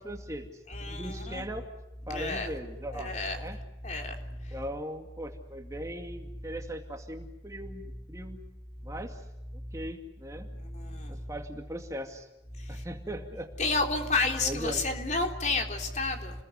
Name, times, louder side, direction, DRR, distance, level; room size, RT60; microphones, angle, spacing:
voice 1, 0.0-1.7 2.1-3.6 4.3-8.4 8.8-9.2 9.7-10.5 11.1-12.3 12.7-13.5 14.4-14.8, equal, 20° right, 4 dB, 2.3 m, -39 dB
voice 2, 0.7-1.4 2.1-2.5 2.9-3.4 3.8-4.1 13.6-16.3, left 3 dB, 40° left, 3 dB, 3.7 m, -30 dB
30.0 x 21.0 x 8.2 m, 0.93 s
head